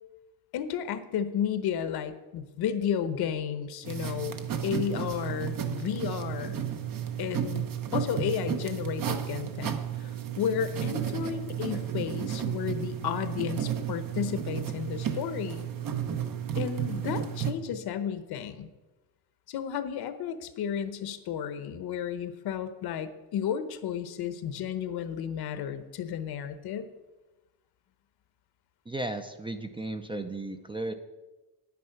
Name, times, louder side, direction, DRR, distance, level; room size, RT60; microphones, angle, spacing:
voice 1, 0.5-4.4 4.6-6.6 7.2-7.7 7.9-15.7 16.6-18.7 19.5-26.9, left 8 dB, 65° left, 11 dB, 1.0 m, -33 dB
sound 1, 3.8-17.5, right 9 dB, 55° right, 1.1 m, -33 dB
voice 2, 28.9-30.9, right 2 dB, 15° right, 7 dB, 0.5 m, -35 dB
9.6 x 9.5 x 5.8 m, 1.1 s
cardioid pair, 145°, 41 cm